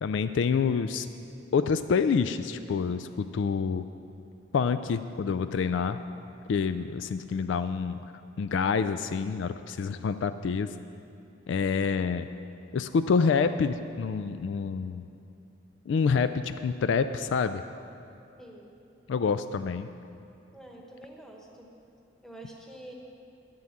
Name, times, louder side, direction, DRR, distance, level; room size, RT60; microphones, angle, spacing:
voice 1, 0.0-1.1 1.5-3.9 4.5-6.0 6.5-8.0 8.4-10.7 11.5-12.3 12.7-15.0 15.9-17.6 19.1-19.9, left 5 dB, 65° left, 11 dB, 0.3 m, -27 dB
voice 2, 18.4-18.7 20.5-21.7 22.2-22.9, right 1 dB, 5° left, 0 dB, 1.1 m, -47 dB
10.0 x 7.7 x 7.2 m, 2.6 s
head